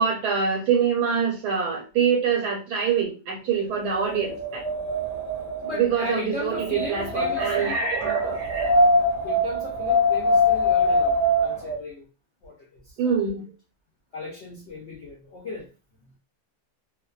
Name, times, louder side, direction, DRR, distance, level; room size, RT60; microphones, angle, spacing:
voice 1, 0.0-4.6 5.8-8.7 13.0-13.5, right 6 dB, 85° right, 1.2 m, -25 dB
Wind, 3.8-11.8, left 1 dB, 55° right, 0.4 m, -23 dB
voice 2, 5.6-8.4 9.2-12.1 12.4-13.0 14.1-15.7, left 2 dB, 70° left, 0.6 m, -36 dB
2.6 x 2.2 x 2.3 m
omnidirectional pair, 1.7 m